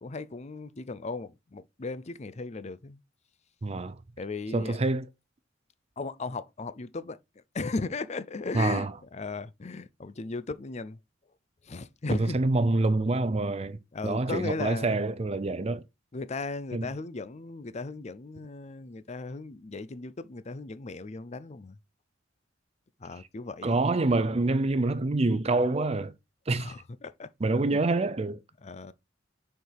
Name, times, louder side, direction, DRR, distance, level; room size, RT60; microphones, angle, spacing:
voice 1, 0.0-3.0 4.2-4.8 6.0-7.2 7.5-11.0 11.6-12.4 13.9-14.9 16.1-21.8 23.0-23.9 26.6-27.3 27.7-27.8 28.6-28.9, left 3 dB, 35° left, 0.5 m, -37 dB
voice 2, 3.6-4.0 4.5-5.1 8.5-8.9 12.1-15.8 16.7-16.9 23.6-26.1 26.5-26.7 27.4-28.4, right 2 dB, 35° right, 0.5 m, -26 dB
6.5 x 4.6 x 4.7 m
head